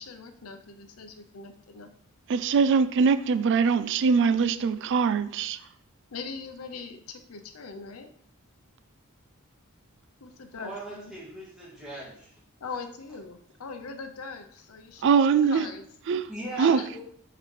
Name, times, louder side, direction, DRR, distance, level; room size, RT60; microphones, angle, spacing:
voice 1, 0.0-1.9 6.1-8.1 10.2-11.1 12.6-15.1 15.5-15.8 16.6-16.9, left 4 dB, 85° left, 0.7 m, -41 dB
voice 2, 2.3-5.6 15.0-15.7 16.1-16.3 16.6-16.8, right 5 dB, 55° right, 0.3 m, -22 dB
voice 3, 10.6-12.3 16.3-17.0, right 1 dB, 5° right, 1.7 m, -39 dB
7.6 x 3.8 x 3.3 m
head